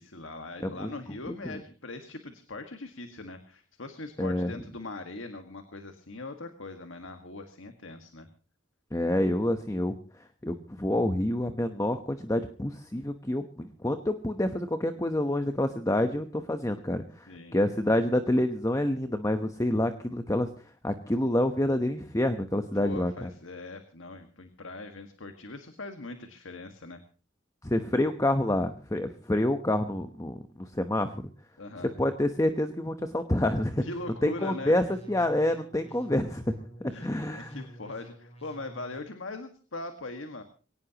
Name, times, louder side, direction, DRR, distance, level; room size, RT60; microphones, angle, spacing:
voice 1, 0.0-8.3 17.3-17.6 22.7-27.0 31.6-32.0 33.8-34.8 36.9-40.4, left 2 dB, 70° left, 6 dB, 1.7 m, -41 dB
voice 2, 4.2-4.6 8.9-9.9 10.4-20.5 20.8-23.3 27.6-31.3 31.8-33.8 34.2-36.6 37.0-37.6, left 1 dB, 15° left, 8 dB, 1.0 m, -28 dB
sound 1, 34.0-39.0, right 1 dB, 30° left, 7.8 m, -50 dB
22.5 x 18.0 x 2.9 m, 0.38 s
head